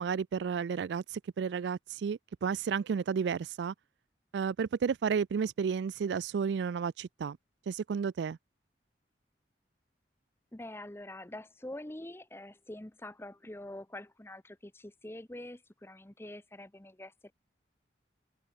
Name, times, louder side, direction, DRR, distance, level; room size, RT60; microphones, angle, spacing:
voice 1, 0.0-3.7 4.3-7.4 7.7-8.4, right 6 dB, 75° right, 0.4 m, -32 dB
voice 2, 10.5-17.3, left 1 dB, 15° left, 0.8 m, -45 dB
head